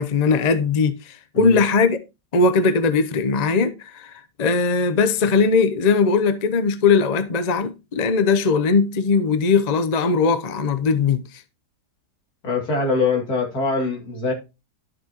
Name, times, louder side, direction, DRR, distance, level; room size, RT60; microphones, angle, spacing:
voice 1, 0.0-2.0 2.3-4.1 4.4-11.4, left 4 dB, 45° left, 0.5 m, -19 dB
voice 2, 12.4-14.3, left 3 dB, 65° left, 3.1 m, -23 dB
12.0 x 6.2 x 2.9 m
omnidirectional pair, 1.8 m